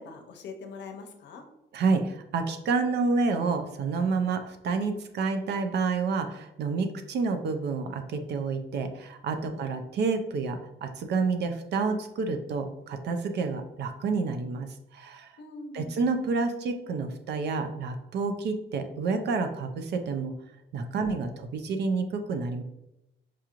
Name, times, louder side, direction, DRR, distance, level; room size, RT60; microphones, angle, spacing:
voice 1, 0.0-1.4 6.8-7.0 9.5-9.6 15.4-15.9 20.9-21.1, left 3 dB, 60° left, 5 dB, 0.6 m, -43 dB
voice 2, 1.7-15.3 15.7-20.3 20.7-22.6, right 4 dB, 55° right, 7 dB, 0.4 m, -29 dB
4.8 x 2.9 x 2.4 m, 0.87 s
cardioid pair, 165°, 20 cm